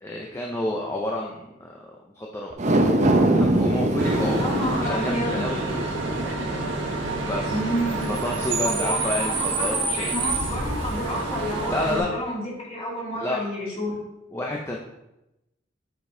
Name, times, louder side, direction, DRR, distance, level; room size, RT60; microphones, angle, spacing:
voice 1, 0.0-2.5 3.0-4.4 4.8-6.0 7.2-7.6 8.1-10.2 11.7-12.1 13.1-13.4 14.3-14.8, left 1 dB, 15° left, -1 dB, 0.6 m, -30 dB
sound 1, 2.5-9.0 9.4-9.5, right 1 dB, 40° right, 0.7 m, -25 dB
Bus / Idling / Screech, 4.0-12.0, right 3 dB, 70° right, 1.4 m, -28 dB
voice 2, 4.3-5.5 7.5-8.1 8.6-14.0, equal, 30° left, -5 dB, 2.5 m, -30 dB
7.9 x 5.1 x 3.8 m, 0.92 s
head